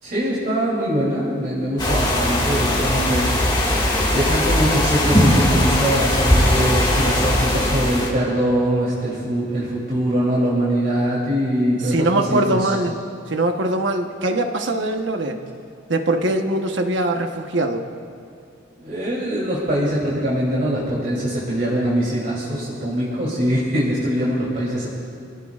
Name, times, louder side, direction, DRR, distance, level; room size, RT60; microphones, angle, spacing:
voice 1, 0.0-12.7 18.8-24.9, equal, 45° right, -7 dB, 3.2 m, -22 dB
sound 1, 1.8-8.1, left 1 dB, 20° left, 1.9 m, -19 dB
voice 2, 11.8-13.0 13.3-15.4 15.9-17.8, right 2 dB, 65° right, 4 dB, 1.1 m, -22 dB
25.0 x 17.5 x 2.5 m, 2.4 s
head